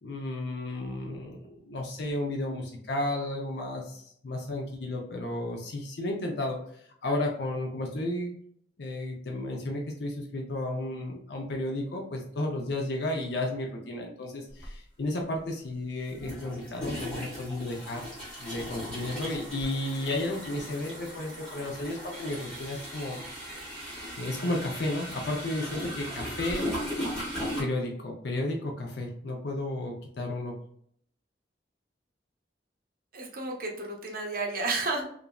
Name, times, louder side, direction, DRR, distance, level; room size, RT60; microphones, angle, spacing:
voice 1, 0.0-8.3 8.8-18.0 18.4-23.2 23.6-26.6 27.6-30.6, left 1 dB, 65° left, 1 dB, 0.5 m, -33 dB
sound 1, 14.6-14.7 16.1-27.6, equal, 5° left, 1.1 m, -37 dB
voice 2, 33.1-35.1, right 3 dB, 50° right, 1 dB, 0.6 m, -32 dB
3.0 x 2.4 x 2.2 m, 0.64 s
head